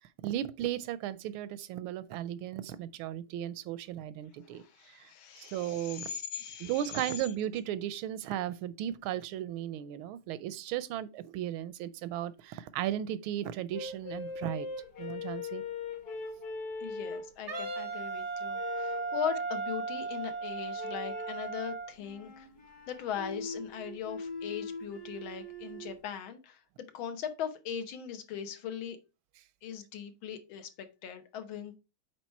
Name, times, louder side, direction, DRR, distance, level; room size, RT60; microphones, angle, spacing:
voice 1, 0.2-4.6 4.9-5.1 5.4-6.2 6.6-14.7 15.0-15.6, right 11 dB, 85° right, 1.4 m, -36 dB
voice 2, 4.4-7.3 16.8-22.5 22.9-26.6 26.9-29.0 29.6-31.8, left 8 dB, 75° left, 1.7 m, -39 dB
sound 1, 13.7-17.9 18.5-19.1 20.7-21.4 22.0-25.9, left 3 dB, 50° left, 2.0 m, -41 dB
Wind instrument woodwind instrument, 17.5-21.9, right 4 dB, 55° right, 0.8 m, -36 dB
8.3 x 3.3 x 4.4 m
omnidirectional pair, 2.2 m